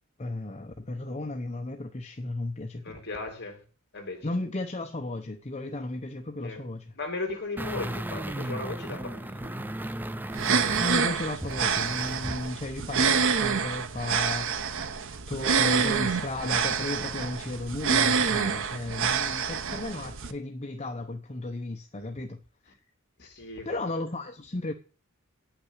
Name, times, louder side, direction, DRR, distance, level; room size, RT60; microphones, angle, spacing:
voice 1, 0.2-3.0 4.2-6.9 10.8-14.5 14.8-14.9 15.3-22.4 23.6-24.7, left 2 dB, 30° left, 0.8 m, -34 dB
voice 2, 2.8-3.6 3.9-4.3 6.4-6.7 6.9-9.5 21.9-22.1 23.2-23.8, left 3 dB, 50° left, 2.8 m, -37 dB
sound 1, 7.6-12.5 12.8-12.9, right 1 dB, 10° right, 0.4 m, -35 dB
sound 2, 10.3-20.3, right 6 dB, 60° right, 0.9 m, -27 dB
9.2 x 6.0 x 8.1 m
head